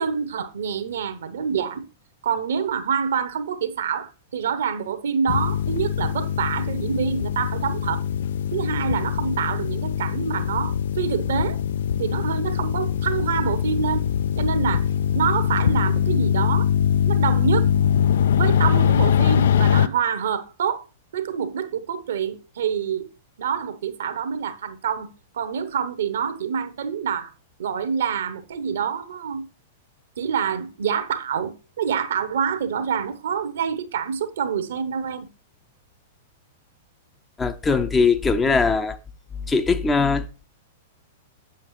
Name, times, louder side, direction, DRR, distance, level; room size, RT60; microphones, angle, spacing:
voice 1, 0.0-1.8 2.2-8.0 8.5-11.6 12.0-14.0 14.4-14.8 15.1-16.7 17.1-17.7 18.4-20.8 21.1-23.1 23.4-25.1 25.3-27.3 27.6-29.5 30.2-35.3, right 7 dB, 60° right, 0.9 m, -26 dB
sound 1, 5.3-19.9, left 9 dB, 60° left, 0.4 m, -22 dB
voice 2, 37.4-39.0 39.5-40.4, left 4 dB, 15° left, 0.6 m, -21 dB
8.5 x 7.2 x 3.1 m
figure-of-eight pair, 100°, 0 cm